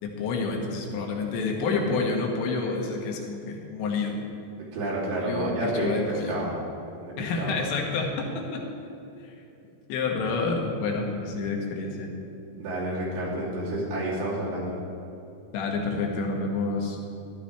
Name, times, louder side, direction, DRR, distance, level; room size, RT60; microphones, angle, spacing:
voice 1, 0.0-4.2 5.2-6.4 7.2-8.6 9.2-9.4 9.9-12.1 15.5-17.0, left 4 dB, 80° left, 0 dB, 3.6 m, -29 dB
voice 2, 4.7-6.0 6.3-6.6 7.0-7.7 10.2-10.3 12.5-14.8, right 1 dB, 75° right, -7 dB, 5.1 m, -30 dB
15.0 x 13.0 x 3.4 m, 2.8 s
omnidirectional pair, 5.2 m